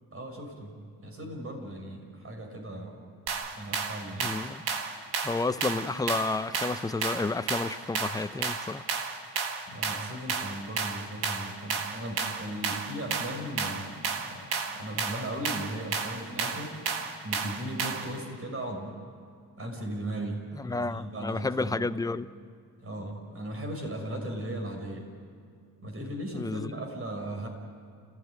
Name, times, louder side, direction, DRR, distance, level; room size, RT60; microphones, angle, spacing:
voice 1, 0.1-3.0 3.6-4.3 9.7-16.8 17.2-18.9 19.6-21.8 22.8-25.1 25.8-27.5, right 1 dB, 35° right, 5.8 m, -37 dB
sound 1, 3.3-18.2, right 5 dB, 85° right, 2.2 m, -33 dB
voice 2, 4.2-4.6 5.2-8.8 20.5-22.3 26.3-26.7, left 3 dB, 10° left, 0.6 m, -31 dB
29.5 x 16.5 x 9.5 m
cardioid pair, 115°, 37 cm